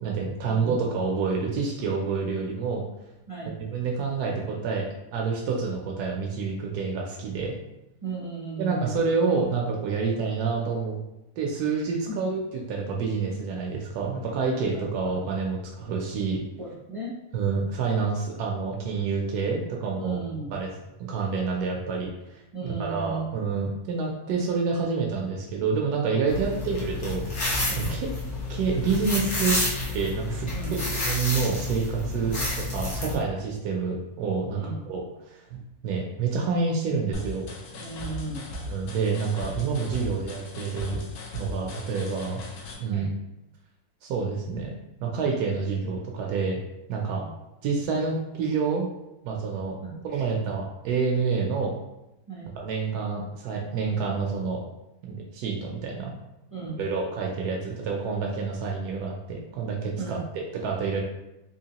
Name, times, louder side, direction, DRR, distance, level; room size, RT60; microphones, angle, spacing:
voice 1, 0.0-2.8 3.6-4.9 5.1-7.5 8.6-10.9 11.4-12.4 12.7-16.4 17.3-20.2 20.5-20.7 21.0-28.1 28.5-29.6 29.8-37.5 38.7-41.0 41.3-42.4 42.8-43.1 44.0-46.6 46.9-47.2 47.6-48.9 49.2-49.8 50.0-51.7 52.6-54.6 55.0-56.1 56.8-61.0, right 5 dB, 85° right, -1 dB, 1.1 m, -28 dB
voice 2, 8.0-9.0 12.1-12.2 14.5-15.2 16.6-17.2 20.0-20.6 22.5-23.4 27.6-28.0 30.5-30.9 32.1-32.3 33.0-33.2 34.5-34.9 37.7-38.4 42.9-43.1 47.0-47.3 49.8-50.0 52.3-52.5 56.5-56.8 60.0-60.3, right 3 dB, 65° right, -6 dB, 0.3 m, -36 dB
sound 1, 26.3-33.1, left 2 dB, 50° left, 1.3 m, -30 dB
sound 2, 37.1-42.7, left 2 dB, 90° left, 1.2 m, -38 dB
3.7 x 2.8 x 2.8 m, 0.91 s
omnidirectional pair, 1.6 m